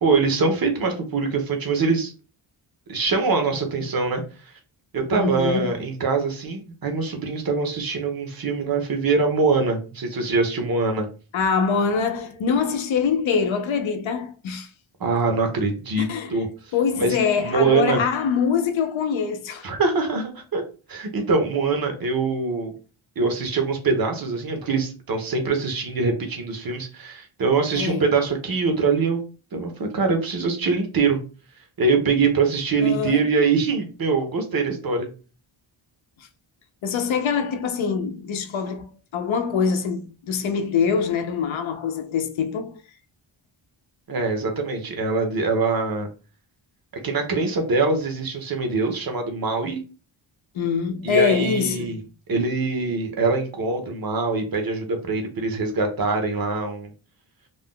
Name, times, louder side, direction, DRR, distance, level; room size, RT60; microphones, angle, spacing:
voice 1, 0.0-2.1 2.9-4.2 4.9-11.1 15.0-16.5 17.0-18.0 19.6-20.6 20.9-22.7 23.2-29.2 29.5-31.2 31.8-35.1 44.1-46.1 47.0-49.8 51.0-52.0 52.3-56.9, right 4 dB, 50° right, 0.7 m, -23 dB
voice 2, 5.1-5.7 11.3-14.7 16.0-16.4 16.7-19.7 27.7-28.1 32.8-33.2 36.2-36.3 36.8-42.8 50.5-51.9, left 6 dB, 75° left, 0.6 m, -24 dB
2.5 x 2.1 x 3.6 m
wide cardioid pair, 160°, 47 cm